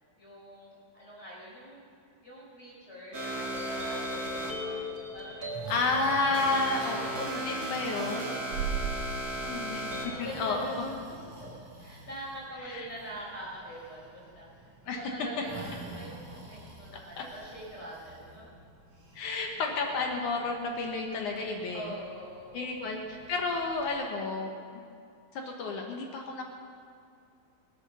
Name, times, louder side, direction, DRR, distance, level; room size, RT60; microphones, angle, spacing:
voice 1, 0.2-1.8 2.2-5.5 6.2-6.3 6.7-7.6 7.9-10.9 11.4-11.5 11.8-18.5 21.7-22.8 25.4-25.9, equal, 15° left, -6 dB, 4.7 m, -44 dB
sound 1, 3.1-10.2, right 1 dB, 35° right, 1.8 m, -36 dB
Breathing, 4.2-23.9, right 5 dB, 55° right, 4.4 m, -45 dB
voice 2, 5.7-8.3 9.4-10.7 12.6-12.9 14.9-15.0 17.2-17.3 19.2-21.9 22.5-24.5 25.3-26.4, left 3 dB, 65° left, 2 dB, 2.3 m, -31 dB
23.0 x 8.0 x 6.8 m, 2.4 s
omnidirectional pair, 4.2 m